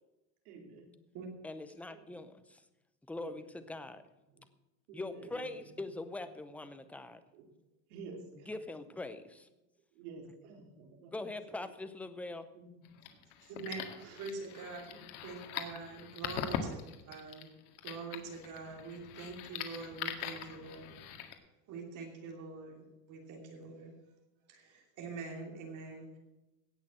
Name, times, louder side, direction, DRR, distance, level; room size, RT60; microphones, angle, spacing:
voice 1, 0.4-0.9 1.9-2.2 3.2-3.3 4.3-4.4 4.9-5.8 7.3-7.5 7.9-8.6 9.9-11.2 11.5-11.6 12.5-12.7 13.4-13.5 14.0-14.2 14.9-15.1 16.7-16.8, right 4 dB, 75° right, 2 dB, 4.1 m, -51 dB
voice 2, 1.4-2.6 3.1-4.0 4.9-7.2 8.5-9.5 11.1-12.5, left 2 dB, 5° left, 10 dB, 0.6 m, -42 dB
sound 1, 12.8-21.3, left 10 dB, 75° left, 2.0 m, -42 dB
voice 3, 13.5-13.9 14.2-14.9 15.2-17.5 17.8-21.1 21.7-23.9 24.5-26.2, right 4 dB, 45° right, 2 dB, 3.0 m, -45 dB
17.5 x 6.4 x 7.6 m, 0.99 s
supercardioid pair, 155°, 44 cm